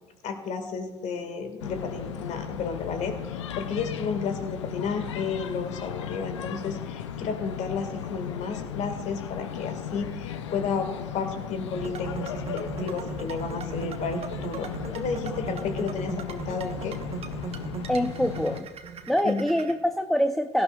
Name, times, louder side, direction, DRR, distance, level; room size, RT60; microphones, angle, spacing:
voice 1, 0.2-17.0 19.2-19.4, left 5 dB, 55° left, 7 dB, 2.0 m, -32 dB
sound 1, 1.6-18.6, left 9 dB, 85° left, 0.6 m, -36 dB
sound 2, 11.7-19.7, right 4 dB, 45° right, 1.2 m, -37 dB
voice 2, 17.9-18.7 19.1-20.6, equal, ahead, 8 dB, 0.6 m, -25 dB
17.5 x 12.5 x 2.4 m, 1.3 s
hypercardioid pair, 60°, 15 cm